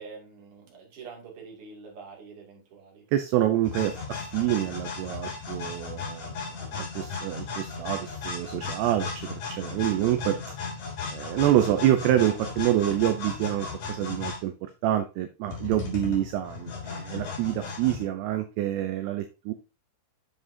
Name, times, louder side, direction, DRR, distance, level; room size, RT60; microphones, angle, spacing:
voice 1, 0.0-3.1, right 5 dB, 40° right, 0 dB, 2.6 m, -45 dB
voice 2, 3.1-10.4 11.1-19.5, right 13 dB, 80° right, 8 dB, 2.5 m, -27 dB
sound 1, 3.6-14.4 15.5-18.0, left 5 dB, 45° left, 4.4 m, -36 dB
8.7 x 7.2 x 2.7 m, 0.30 s
omnidirectional pair, 5.4 m